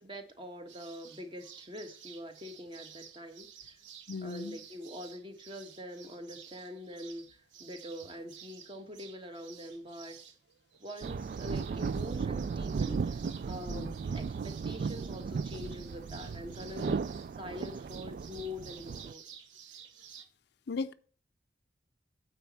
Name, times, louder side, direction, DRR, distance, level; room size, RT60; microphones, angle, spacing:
voice 1, 0.0-3.7 4.2-7.3 7.6-10.2 10.8-19.2, left 1 dB, 25° right, 1.4 m, -44 dB
sound 1, 0.7-20.3, right 8 dB, 80° right, 1.1 m, -53 dB
voice 2, 4.1-4.6 13.7-14.0 20.7-20.9, left 4 dB, 60° left, 0.5 m, -37 dB
sound 2, 11.0-19.1, right 5 dB, 45° right, 0.3 m, -36 dB
9.0 x 4.2 x 7.2 m
head